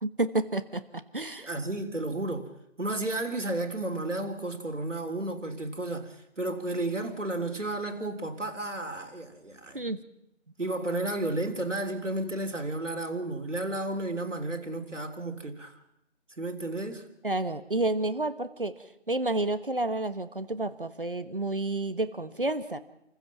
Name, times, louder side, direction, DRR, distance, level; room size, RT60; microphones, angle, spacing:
voice 1, 0.0-1.5 9.7-10.0 17.2-22.8, right 2 dB, 45° right, 1.3 m, -30 dB
voice 2, 1.4-2.5 2.8-9.8 10.6-15.8 16.4-17.1, right 2 dB, 80° right, 3.4 m, -32 dB
28.5 x 15.0 x 6.0 m
figure-of-eight pair, 175°, 36 cm